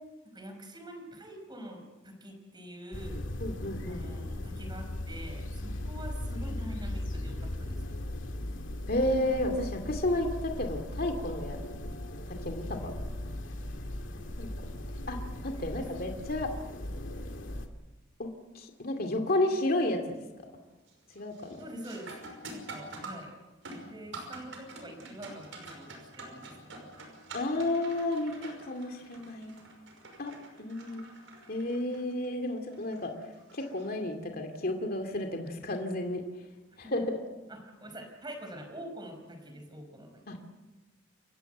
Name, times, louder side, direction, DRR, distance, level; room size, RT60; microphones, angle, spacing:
voice 1, 0.3-3.2 3.9-8.0 15.8-15.9 21.6-22.1 22.5-23.4 23.8-27.0 36.8-37.0 37.5-40.6, equal, 25° right, 5 dB, 5.1 m, -45 dB
sound 1, 2.9-17.7, left 1 dB, 85° left, 2.2 m, -38 dB
voice 2, 3.4-4.0 8.9-11.6 12.4-12.9 14.4-14.5 15.1-15.2 15.4-16.5 18.2-18.3 18.5-20.0 21.1-21.6 27.3-29.5 30.2-30.3 30.6-31.0 31.5-33.1 33.5-36.2 36.9-37.2 40.3-40.4, left 1 dB, 50° left, 4 dB, 2.4 m, -31 dB
sound 2, 19.3-19.7 20.1-20.5 20.9-34.4 36.9-37.0 37.8-38.1, right 2 dB, 85° right, 5.7 m, -47 dB
29.0 x 15.5 x 8.0 m, 1.2 s
head